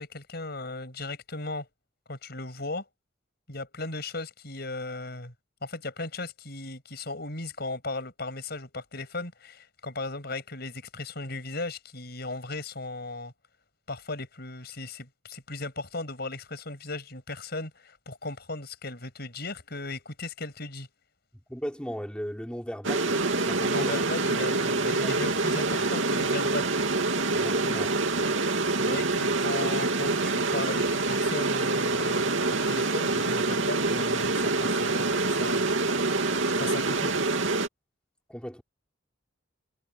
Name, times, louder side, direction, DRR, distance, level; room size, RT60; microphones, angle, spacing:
voice 1, 0.0-1.7 2.1-2.9 3.5-5.3 5.6-13.3 13.9-20.9 23.6-26.7 28.7-35.8 36.6-37.1, left 2 dB, 55° left, 6.7 m, -37 dB
voice 2, 21.5-24.0 25.0-25.1 27.4-28.0 38.3-38.6, equal, 5° left, 3.5 m, -37 dB
sound 1, 22.8-37.7, right 3 dB, 75° right, 2.7 m, -26 dB
head